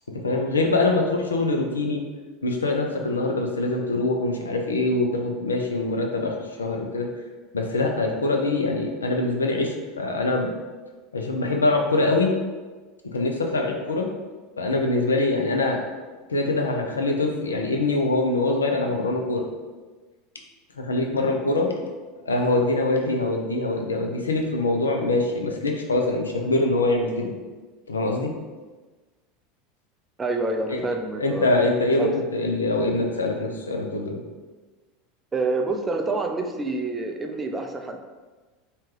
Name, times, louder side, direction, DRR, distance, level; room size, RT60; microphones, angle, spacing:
voice 1, 0.2-2.0 2.4-7.1 7.5-10.5 11.1-12.3 13.1-14.1 14.6-15.8 16.3-19.5 20.8-21.7 22.3-27.3 27.9-28.3 30.7-30.8 31.2-34.2, left 2 dB, 80° left, 2 dB, 0.3 m, -24 dB
voice 2, 30.2-31.6 32.0-32.2 35.3-38.0, right 2 dB, 20° right, 5 dB, 0.3 m, -27 dB
2.8 x 2.2 x 3.0 m, 1.3 s
figure-of-eight pair, 80°, 0 cm